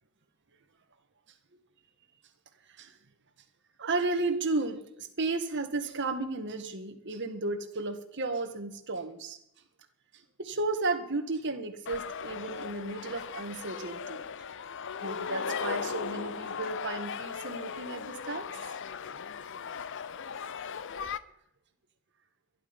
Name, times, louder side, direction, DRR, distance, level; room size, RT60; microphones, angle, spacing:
voice 1, 3.8-9.4 10.4-14.3 15.0-18.7, right 3 dB, 55° right, 6 dB, 1.9 m, -33 dB
sound 1, 11.9-21.2, left 6 dB, 55° left, 0.7 m, -37 dB
22.5 x 11.0 x 5.5 m, 0.78 s
head